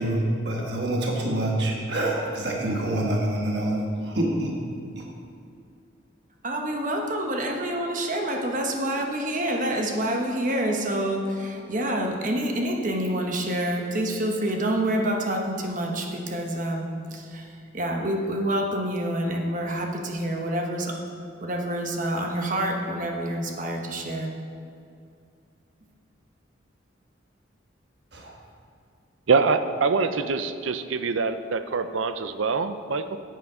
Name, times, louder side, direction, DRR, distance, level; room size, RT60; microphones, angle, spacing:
voice 1, 0.0-4.6 5.0-5.1 28.1-28.3, right 1 dB, 60° right, -1 dB, 1.4 m, -26 dB
voice 2, 6.4-17.5 17.7-21.0 21.4-24.3, right 1 dB, 40° right, 2 dB, 1.1 m, -27 dB
voice 3, 29.3-33.2, right 4 dB, 85° right, 10 dB, 0.6 m, -24 dB
9.4 x 8.5 x 4.9 m, 2.4 s
head